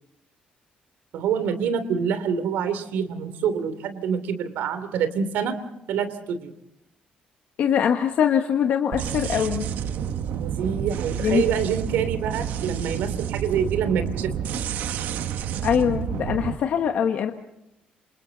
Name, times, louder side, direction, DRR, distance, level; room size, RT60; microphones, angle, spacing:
voice 1, 1.1-5.6 5.9-6.5 10.4-14.3, right 7 dB, 85° right, 10 dB, 3.0 m, -26 dB
voice 2, 7.6-9.7 11.2-11.4 15.6-17.3, left 8 dB, 55° left, 5 dB, 1.4 m, -22 dB
sound 1, 8.9-16.5, right 8 dB, 70° right, 1.4 m, -29 dB
28.0 x 27.5 x 4.1 m, 0.84 s
cardioid pair, 170°, 3 cm